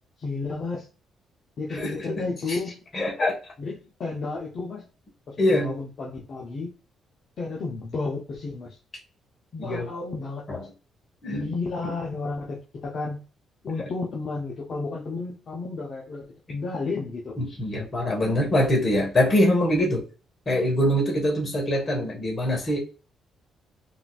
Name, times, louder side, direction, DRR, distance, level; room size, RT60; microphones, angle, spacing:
voice 1, 0.2-0.9 1.6-2.9 3.6-4.8 5.3-6.7 7.4-8.8 9.5-10.6 11.3-13.2 13.6-17.4, left 3 dB, 55° left, -3 dB, 0.7 m, -32 dB
voice 2, 1.7-2.6 2.9-3.3 5.4-5.8 9.6-9.9 10.5-10.6 11.2-11.5 17.4-20.0 20.5-22.8, left 1 dB, 40° left, 0 dB, 1.3 m, -24 dB
3.8 x 2.5 x 2.3 m, 0.35 s
cardioid pair, 90°, 0 cm